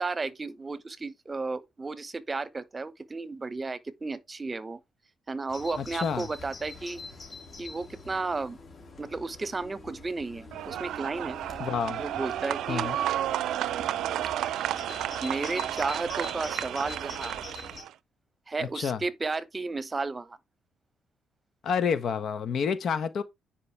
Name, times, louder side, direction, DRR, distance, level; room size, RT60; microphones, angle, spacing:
voice 1, 0.0-4.8 5.3-7.0 7.6-8.6 9.0-11.4 11.9-12.9 15.2-17.3 18.5-20.4, right 3 dB, 25° right, 1.1 m, -33 dB
Bird vocalization bird call bird song, 5.5-17.8, left 3 dB, 40° left, 3.3 m, -45 dB
voice 2, 5.8-6.3 11.6-12.0 12.7-13.0 18.6-19.0 21.6-23.2, left 6 dB, 60° left, 1.4 m, -29 dB
sound 1, 10.5-17.9, right 12 dB, 80° right, 0.5 m, -32 dB
9.7 x 5.1 x 3.4 m
cardioid pair, 90°, 0 cm